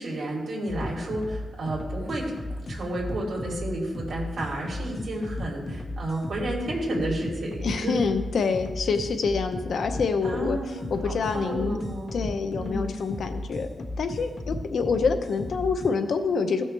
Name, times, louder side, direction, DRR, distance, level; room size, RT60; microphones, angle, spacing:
voice 1, 0.0-8.0 10.2-12.1 12.6-13.0, right 1 dB, 65° right, -3 dB, 2.8 m, -31 dB
sound 1, 0.7-15.9, left 1 dB, 45° left, 1.1 m, -35 dB
voice 2, 7.6-11.8 12.1-16.6, left 5 dB, 70° left, 7 dB, 0.7 m, -27 dB
15.5 x 6.4 x 3.3 m, 1.2 s
wide cardioid pair, 150°, 0 cm